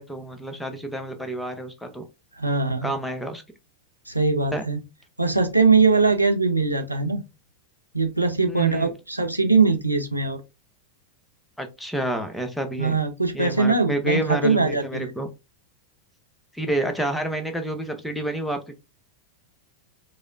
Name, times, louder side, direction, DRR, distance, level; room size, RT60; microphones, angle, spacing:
voice 1, 0.0-2.0 2.8-3.4 4.5-4.6 8.5-8.9 11.6-13.0 13.3-15.3 16.5-18.8, right 1 dB, 5° left, 0.7 m, -29 dB
voice 2, 2.4-2.9 4.1-4.8 5.2-7.2 7.9-10.4 12.8-15.1, right 4 dB, 85° right, 0.6 m, -21 dB
4.8 x 2.1 x 2.4 m
figure-of-eight pair, 90°, 0 cm